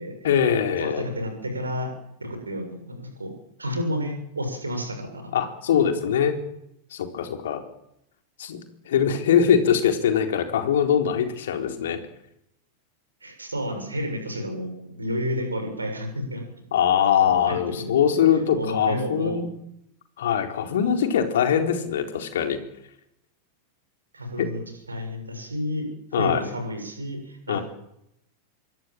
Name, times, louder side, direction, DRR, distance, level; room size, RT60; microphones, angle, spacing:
voice 1, 0.2-1.0 5.3-6.4 6.9-7.6 8.4-8.6 8.9-12.0 16.7-19.5 20.2-22.6 26.1-26.4 27.5-27.6, left 8 dB, 60° left, 5 dB, 4.2 m, -22 dB
voice 2, 0.8-1.9 2.2-3.3 3.6-5.3 13.2-16.4 17.2-18.2 18.5-19.4 24.1-25.9 26.2-27.6, equal, 80° right, 5 dB, 6.9 m, -31 dB
27.0 x 22.5 x 7.7 m, 0.79 s
figure-of-eight pair, 90°, 0 cm